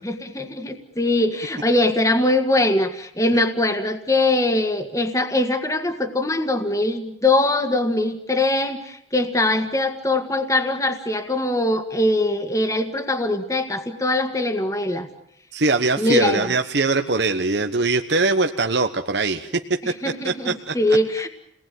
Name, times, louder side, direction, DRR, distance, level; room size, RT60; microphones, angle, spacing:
voice 1, 0.0-15.1 16.0-16.6 19.8-21.3, left 2 dB, 15° left, 7 dB, 1.8 m, -22 dB
voice 2, 15.5-19.5 20.0-20.7, right 3 dB, 60° right, 5 dB, 1.1 m, -22 dB
29.5 x 19.5 x 9.3 m, 0.74 s
head